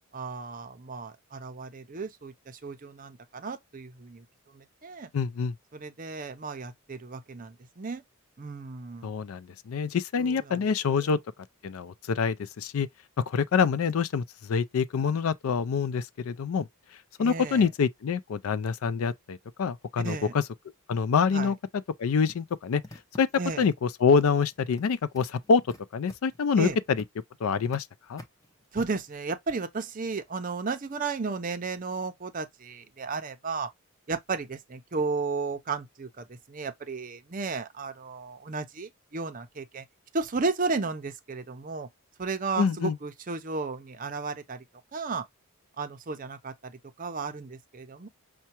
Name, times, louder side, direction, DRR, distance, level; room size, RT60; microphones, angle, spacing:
voice 1, 0.1-4.3 4.5-5.1 5.7-8.0 8.4-9.1 10.2-11.1 17.2-17.7 20.0-20.3 21.3-21.5 23.4-23.7 26.6-26.8 28.7-33.7 34.1-39.8 40.1-41.9 42.2-44.6 44.9-45.2 45.8-48.1, right 4 dB, 35° right, 0.5 m, -34 dB
voice 2, 5.1-5.5 9.0-11.2 11.6-12.9 13.2-16.7 17.2-20.4 20.9-21.6 22.0-22.8 23.2-23.3 23.6-25.6 25.9-27.0 27.4-28.2 42.6-43.0, left 5 dB, 75° left, 0.4 m, -26 dB
sound 1, 22.3-23.7 24.2-24.8 25.1-27.2 27.5-27.8 28.2-29.0, left 1 dB, 15° left, 0.7 m, -48 dB
5.6 x 2.2 x 2.8 m
head